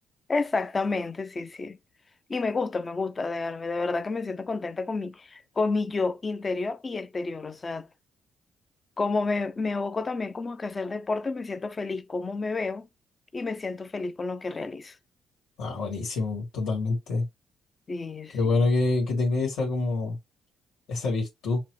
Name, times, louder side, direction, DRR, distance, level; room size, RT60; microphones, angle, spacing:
voice 1, 0.3-1.8 2.3-7.9 9.0-12.9 13.3-15.0 17.9-18.4, left 3 dB, 30° left, 0.4 m, -30 dB
voice 2, 15.6-17.2 18.3-20.2 20.9-21.6, left 3 dB, 85° left, 1.6 m, -26 dB
6.0 x 2.1 x 3.0 m
cardioid pair, 90°, 0 cm